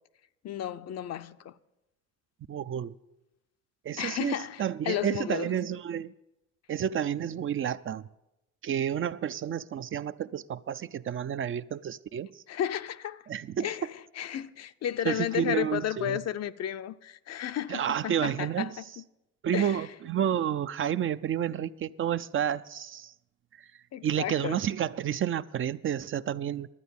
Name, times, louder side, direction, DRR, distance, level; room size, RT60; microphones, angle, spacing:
voice 1, 0.4-1.5 4.0-5.5 12.5-13.2 13.6-13.9 14.2-18.8 19.5-19.9 23.9-24.6, left 10 dB, 60° left, 0.5 m, -33 dB
voice 2, 2.5-3.0 3.8-6.1 6.7-8.0 8.6-12.3 13.3-13.7 15.1-16.2 17.7-18.8 19.4-23.1 23.6-23.7 24.0-26.7, right 9 dB, 45° right, 0.4 m, -30 dB
11.5 x 9.2 x 7.0 m
cardioid pair, 90°, 30 cm